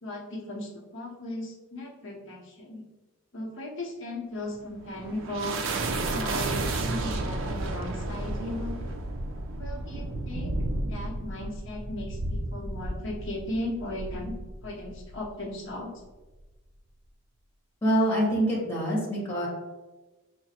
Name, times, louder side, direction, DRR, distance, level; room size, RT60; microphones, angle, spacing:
voice 1, 0.0-2.8 3.3-5.6 6.1-8.8 9.6-10.6 10.8-14.3 14.6-15.9, left 1 dB, 60° left, -2 dB, 0.8 m, -36 dB
sound 1, 4.5-15.3, right 2 dB, 65° right, 0.4 m, -32 dB
voice 2, 17.8-19.5, right 1 dB, 10° left, -6 dB, 1.2 m, -25 dB
5.7 x 2.1 x 2.8 m, 1.2 s
head